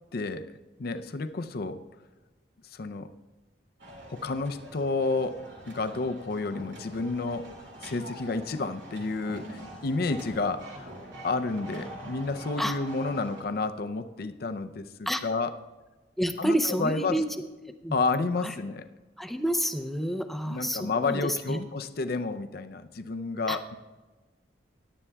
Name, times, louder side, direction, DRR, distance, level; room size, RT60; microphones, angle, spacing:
voice 1, 0.1-1.8 2.6-3.1 4.1-7.5 7.8-10.9 11.2-15.5 16.4-16.5 16.8-17.2 17.9-18.9 20.5-23.8, left 3 dB, 60° left, 9 dB, 0.5 m, -30 dB
sound 1, 3.8-13.4, right 1 dB, 85° right, 2.4 m, -45 dB
voice 2, 16.2-17.3 17.6-18.0 18.4-18.5 19.2-21.7 23.5-23.6, equal, ahead, 6 dB, 0.5 m, -29 dB
17.0 x 11.0 x 2.3 m, 1.2 s
head